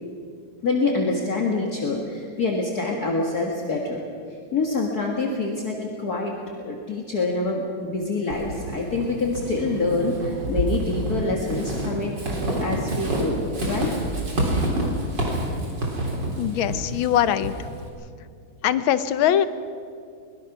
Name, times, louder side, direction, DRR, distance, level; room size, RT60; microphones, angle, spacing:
voice 1, 0.6-4.1 4.5-12.1 12.6-13.4 13.7-13.9, left 3 dB, 50° left, -1 dB, 2.2 m, -26 dB
Walk footsteps / Squeak, 8.3-17.9, right 1 dB, 55° right, 4.1 m, -28 dB
voice 2, 16.4-17.5 18.6-19.5, left 10 dB, 80° left, 12 dB, 1.7 m, -21 dB
23.5 x 20.5 x 6.0 m, 2.4 s
omnidirectional pair, 2.2 m